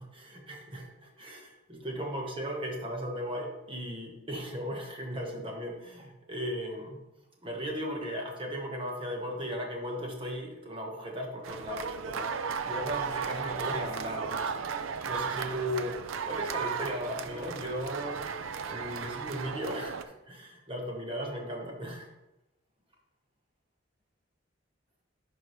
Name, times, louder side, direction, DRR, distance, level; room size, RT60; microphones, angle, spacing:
voice 1, 0.0-7.0 7.4-12.3 12.6-14.6 15.0-18.2 18.7-22.1, equal, 25° right, 1 dB, 1.2 m, -37 dB
sound 1, 11.4-20.0, right 6 dB, 85° right, 0.5 m, -35 dB
10.5 x 4.8 x 3.1 m, 0.95 s
head